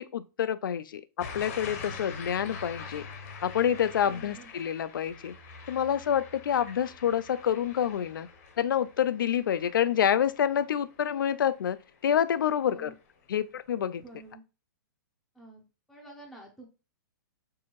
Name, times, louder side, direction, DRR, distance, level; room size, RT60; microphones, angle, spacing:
voice 1, 0.0-3.1 3.4-5.3 5.7-8.3 8.6-11.8 12.0-12.9 13.3-14.0, left 9 dB, 90° left, 0.4 m, -27 dB
sound 1, 1.2-12.0 12.4-12.9, left 5 dB, 50° left, 0.8 m, -45 dB
voice 2, 4.0-4.5 12.6-12.9 14.0-14.4 15.3-16.7, right 2 dB, ahead, 0.6 m, -49 dB
4.6 x 2.5 x 3.0 m
hypercardioid pair, 155°, 11 cm